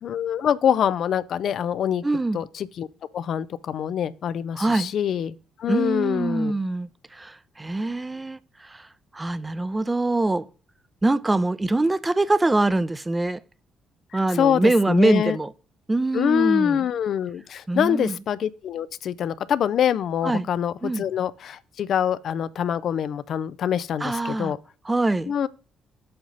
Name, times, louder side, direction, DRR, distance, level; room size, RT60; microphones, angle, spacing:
voice 1, 0.0-2.0 2.3-2.9 3.1-6.5 14.1-15.4 16.1-24.6 25.3-25.5, left 9 dB, 60° left, 0.4 m, -25 dB
voice 2, 2.0-2.4 4.6-4.9 5.7-8.9 9.1-10.5 11.0-13.4 14.1-15.5 15.9-16.8 17.7-18.2 20.2-20.5 20.8-21.0 24.0-24.5 24.9-25.3, right 2 dB, 20° right, 0.6 m, -24 dB
7.9 x 3.7 x 5.4 m
hypercardioid pair, 45°, 0 cm